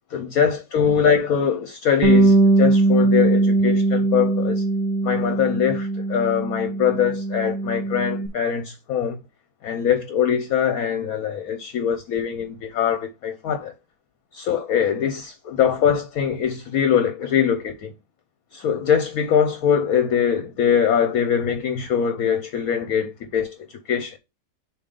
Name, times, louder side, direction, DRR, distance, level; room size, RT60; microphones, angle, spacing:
voice 1, 0.1-4.6 5.0-9.2 9.6-13.7 14.3-17.9 18.5-23.6 23.9-24.2, left 8 dB, 65° left, 1.0 m, -22 dB
Bass guitar, 2.0-8.3, right 2 dB, 50° right, 0.9 m, -20 dB
6.9 x 2.9 x 5.1 m
omnidirectional pair, 2.0 m